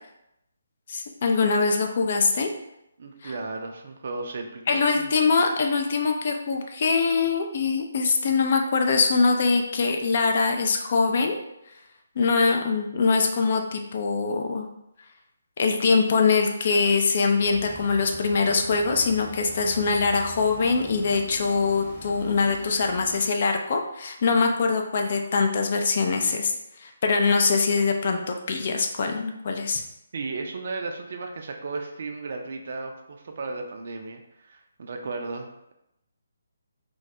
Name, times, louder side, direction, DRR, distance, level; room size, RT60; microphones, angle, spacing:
voice 1, 0.9-2.5 3.2-3.3 4.7-11.4 12.2-14.7 15.6-26.5 26.8-29.8, left 4 dB, 45° left, 3 dB, 0.3 m, -23 dB
voice 2, 3.0-5.1 30.1-35.7, right 3 dB, 50° right, 4 dB, 0.3 m, -35 dB
sound 1, 17.3-23.4, right 1 dB, 10° left, 0.8 m, -43 dB
2.2 x 2.2 x 2.7 m, 0.83 s
figure-of-eight pair, 145°, 0 cm